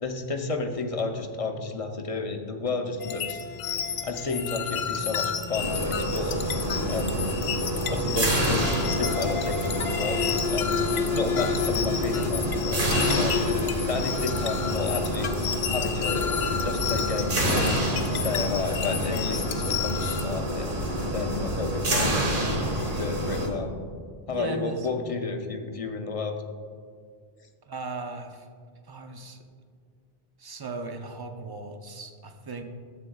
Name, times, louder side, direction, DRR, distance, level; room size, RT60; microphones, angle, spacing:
voice 1, 0.0-3.4 4.0-6.4 6.9-7.3 7.9-10.2 10.5-10.9 11.1-13.3 13.9-15.3 15.7-16.2 16.6-17.7 18.0-20.7 21.1-22.6 22.8-23.7 24.3-26.4, left 3 dB, 40° left, 4 dB, 0.6 m, -31 dB
sound 1, 3.0-20.3, left 7 dB, 85° left, 0.8 m, -31 dB
sound 2, 5.5-23.5, equal, 55° right, 1.4 m, -28 dB
voice 2, 24.3-24.9 27.7-28.5 28.9-29.4 30.4-32.6, right 3 dB, 30° right, 5 dB, 0.5 m, -37 dB
11.5 x 7.8 x 2.3 m, 2.1 s
omnidirectional pair, 1.0 m